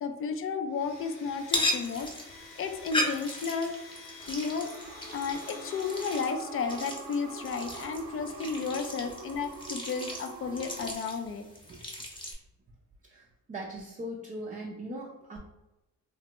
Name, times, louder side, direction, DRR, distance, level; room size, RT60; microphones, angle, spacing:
voice 1, 0.0-2.1 2.6-3.7 4.3-4.7 5.1-11.5, left 5 dB, 45° left, 7 dB, 0.4 m, -33 dB
Domestic sounds home sounds, 0.7-6.2, left 3 dB, 80° left, 1.0 m, -48 dB
sound 1, 1.4-12.3, left 1 dB, 15° left, 0.7 m, -37 dB
sound 2, 4.2-10.9, right 4 dB, 80° right, 0.6 m, -45 dB
voice 2, 13.0-15.4, right 1 dB, 25° right, -2 dB, 0.4 m, -40 dB
3.2 x 2.1 x 2.9 m, 0.95 s
cardioid pair, 90°, 30 cm